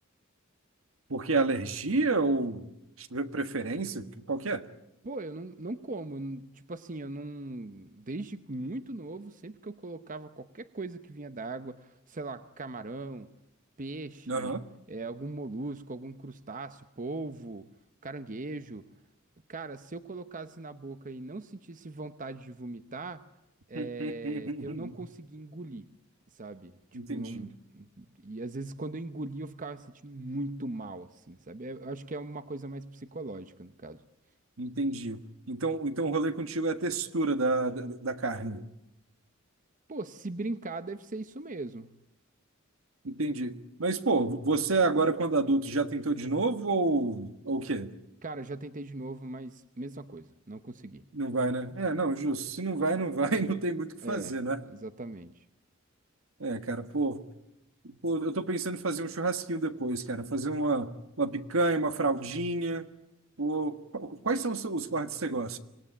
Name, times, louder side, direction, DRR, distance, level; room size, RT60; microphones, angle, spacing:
voice 1, 1.1-2.7 3.0-4.6 14.3-14.6 23.7-24.9 26.9-27.5 34.6-35.2 35.5-38.6 43.0-47.9 51.1-54.6 56.4-57.2 57.8-62.9 63.4-65.6, right 3 dB, 70° right, 9 dB, 1.5 m, -29 dB
voice 2, 5.0-13.3 13.8-14.5 14.9-17.6 18.0-18.8 19.5-23.2 23.7-25.9 26.3-34.0 39.9-41.9 48.2-51.0 54.0-54.3 54.7-55.5, right 2 dB, 40° right, 11 dB, 0.9 m, -39 dB
26.0 x 19.0 x 10.0 m, 0.90 s
head